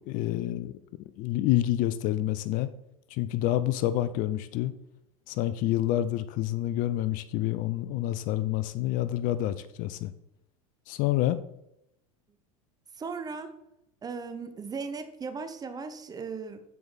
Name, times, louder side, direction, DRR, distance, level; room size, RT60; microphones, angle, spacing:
voice 1, 0.1-2.7 3.1-4.7 5.3-10.1 10.9-11.4, left 13 dB, 50° left, 14 dB, 0.4 m, -28 dB
voice 2, 13.0-13.5 14.0-16.6, right 5 dB, 20° right, 8 dB, 0.8 m, -37 dB
7.0 x 4.7 x 4.0 m, 0.84 s
hypercardioid pair, 95°, 18 cm